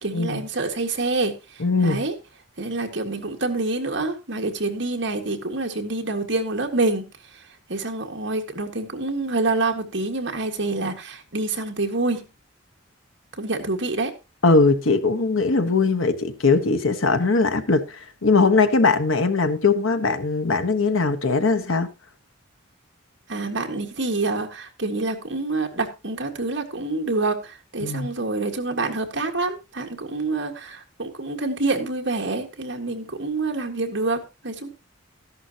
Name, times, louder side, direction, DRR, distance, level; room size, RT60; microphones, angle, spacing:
voice 1, 0.0-1.3 1.8-2.2 2.6-7.1 7.7-12.3 13.4-14.1 23.3-34.7, right 2 dB, 60° right, 1.8 m, -27 dB
voice 2, 1.6-2.0 14.4-21.9 27.8-28.1, left 3 dB, 80° left, 1.2 m, -20 dB
13.5 x 11.0 x 2.9 m
head